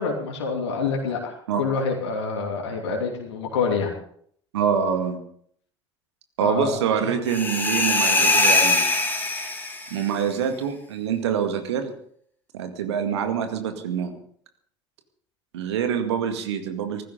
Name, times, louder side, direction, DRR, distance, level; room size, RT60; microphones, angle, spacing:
voice 1, 0.0-3.9 6.4-6.7 7.0-7.2, left 4 dB, 75° left, 0 dB, 3.0 m, -27 dB
voice 2, 4.5-5.2 6.4-8.8 9.9-11.9 12.5-14.1 15.5-17.0, right 7 dB, 75° right, 6 dB, 2.2 m, -25 dB
sound 1, 7.3-10.0, left 2 dB, 15° left, 3.3 m, -21 dB
19.0 x 15.0 x 3.9 m, 0.62 s
figure-of-eight pair, 65°, 14 cm